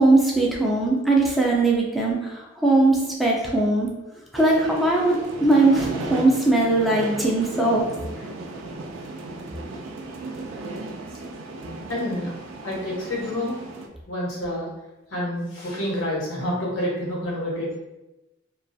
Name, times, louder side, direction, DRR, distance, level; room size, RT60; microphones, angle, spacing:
voice 1, 0.0-3.9 4.3-7.9, right 2 dB, ahead, -3 dB, 0.4 m, -20 dB
sound 1, 4.3-13.9, right 2 dB, 80° right, 0.4 m, -35 dB
voice 2, 11.9-12.4 12.6-13.6 14.1-14.7 15.1-17.8, left 1 dB, 90° left, -5 dB, 1.0 m, -28 dB
2.4 x 2.3 x 2.5 m, 0.99 s
head